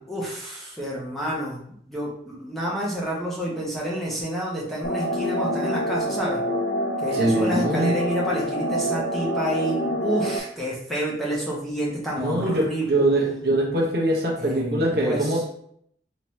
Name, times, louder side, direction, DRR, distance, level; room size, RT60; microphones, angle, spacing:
voice 1, 0.1-6.4 7.0-12.9 14.4-15.4, right 1 dB, ahead, -6 dB, 0.8 m, -29 dB
sound 1, 4.8-10.4, equal, 55° left, 0.4 m, -26 dB
voice 2, 7.1-8.0 12.1-15.5, right 1 dB, 60° right, -1 dB, 0.8 m, -23 dB
3.3 x 2.9 x 3.1 m, 0.68 s
head